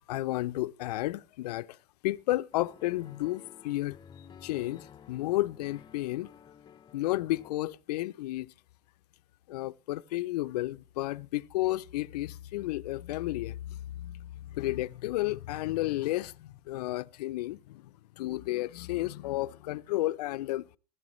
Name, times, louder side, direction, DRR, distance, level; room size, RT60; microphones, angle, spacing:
voice 1, 0.1-1.8 2.0-4.0 4.4-6.3 6.9-8.5 9.5-20.7, left 17 dB, 70° left, 0.6 m, -32 dB
sound 1, 2.5-7.5, left 7 dB, 20° left, 0.7 m, -52 dB
16.5 x 15.0 x 3.1 m
hypercardioid pair, 105°, 21 cm